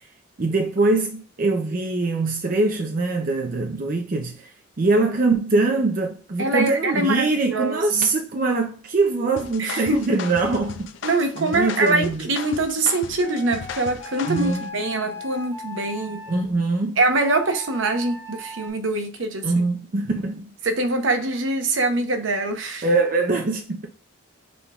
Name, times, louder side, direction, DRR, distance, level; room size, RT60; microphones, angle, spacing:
voice 1, 0.4-10.9 11.4-12.3 14.3-14.7 16.3-17.0 19.4-20.5 22.8-23.9, right 3 dB, 40° right, 0.5 m, -23 dB
voice 2, 6.4-8.1 9.6-10.0 11.0-16.2 17.0-19.5 20.6-22.9, right 2 dB, 70° right, 0.8 m, -24 dB
sound 1, 9.4-14.7, left 6 dB, 65° left, 0.4 m, -37 dB
sound 2, 13.2-16.4 17.2-18.7, left 2 dB, 15° right, 1.5 m, -38 dB
6.0 x 3.6 x 2.3 m
head